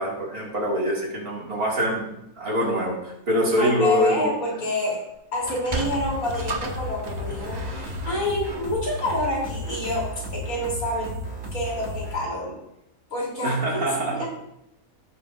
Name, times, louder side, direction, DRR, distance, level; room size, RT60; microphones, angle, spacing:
voice 1, 0.0-4.3 13.4-14.3, equal, 85° right, -4 dB, 3.0 m, -24 dB
voice 2, 3.6-5.0 5.3-11.2 11.5-12.6 13.1-14.3, left 1 dB, 75° left, -4 dB, 3.9 m, -28 dB
Sliding door, 5.3-10.0, right 3 dB, 35° right, 1.0 m, -35 dB
sound 1, 5.8-12.2, left 1 dB, 55° right, 3.3 m, -34 dB
17.0 x 6.7 x 2.6 m, 0.85 s
omnidirectional pair, 1.5 m